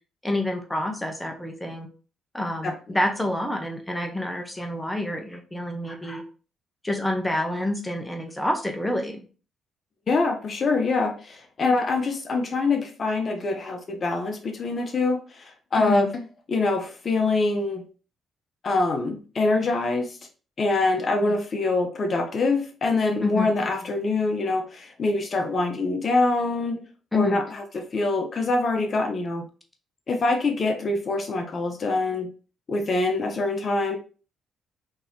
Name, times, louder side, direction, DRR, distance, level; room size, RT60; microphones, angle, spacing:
voice 1, 0.2-1.9 2.3-6.2 6.8-9.3 15.8-16.1 23.2-23.5 27.1-27.4, left 1 dB, 10° left, 3 dB, 0.7 m, -28 dB
voice 2, 2.6-3.0 10.1-16.1 16.5-17.8 18.6-20.2 20.6-26.8 27.1-29.5 30.1-32.3 32.7-34.0, left 3 dB, 45° left, 4 dB, 0.7 m, -24 dB
3.7 x 2.8 x 2.7 m, 0.37 s
cardioid pair, 90°, 0 cm